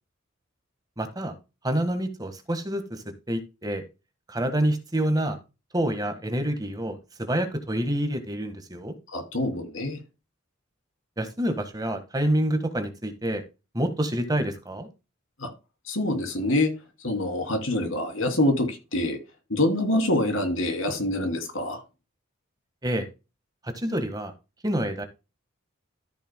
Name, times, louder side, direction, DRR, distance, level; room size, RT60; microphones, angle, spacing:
voice 1, 1.0-1.3 1.6-3.8 4.3-5.4 5.7-8.9 11.2-13.4 13.7-14.9 22.8-23.1 23.6-24.3 24.6-25.1, right 1 dB, 20° right, 1.5 m, -27 dB
voice 2, 9.1-10.0 15.4-15.5 15.9-16.7 17.0-19.2 19.5-21.8, left 1 dB, 90° left, 2.9 m, -25 dB
13.5 x 6.7 x 2.2 m
head